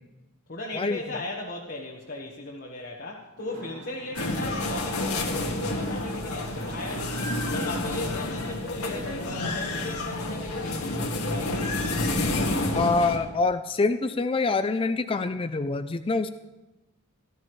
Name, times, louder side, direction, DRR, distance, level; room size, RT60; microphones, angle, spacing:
voice 1, 0.5-11.7, left 2 dB, 45° left, -1 dB, 1.4 m, -37 dB
sound 1, 3.4-8.7, right 1 dB, 85° right, 2.5 m, -45 dB
sound 2, 4.1-13.2, left 2 dB, 75° left, 1.8 m, -29 dB
voice 2, 12.7-16.3, left 3 dB, 25° left, 10 dB, 0.4 m, -25 dB
17.5 x 13.5 x 3.2 m, 1.1 s
head